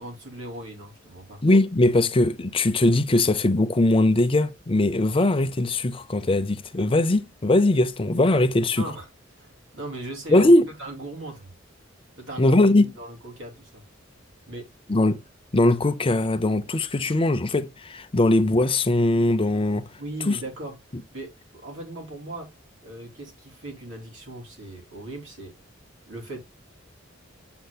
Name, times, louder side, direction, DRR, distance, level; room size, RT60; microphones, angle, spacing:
voice 1, 0.0-1.4 8.7-9.1 9.3-10.5 10.8-11.5 12.2-12.6 12.9-13.8 14.5-14.7 20.0-21.3 21.6-22.5 22.8-25.5 26.1-26.4, right 2 dB, 70° right, 3.1 m, -38 dB
voice 2, 1.4-8.9 10.3-10.7 12.4-12.9 14.9-15.2 15.5-19.9 20.3-20.4, left 2 dB, 25° left, 0.5 m, -20 dB
7.8 x 6.9 x 2.3 m
head